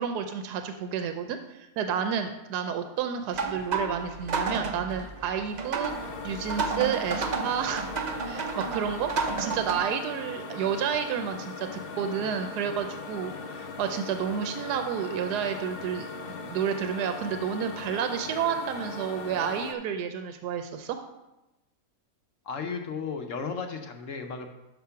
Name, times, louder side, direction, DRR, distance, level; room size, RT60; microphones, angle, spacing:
voice 1, 0.0-7.8 8.2-9.1 9.4-16.1 16.4-21.0, right 7 dB, 85° right, 7 dB, 1.2 m, -30 dB
sound 1, 3.3-9.8, right 4 dB, 65° right, 0.4 m, -32 dB
sound 2, 5.9-19.7, left 4 dB, 85° left, 0.5 m, -39 dB
voice 2, 22.4-24.5, left 5 dB, 60° left, 5 dB, 1.0 m, -34 dB
6.1 x 5.7 x 5.7 m, 0.97 s
omnidirectional pair, 1.7 m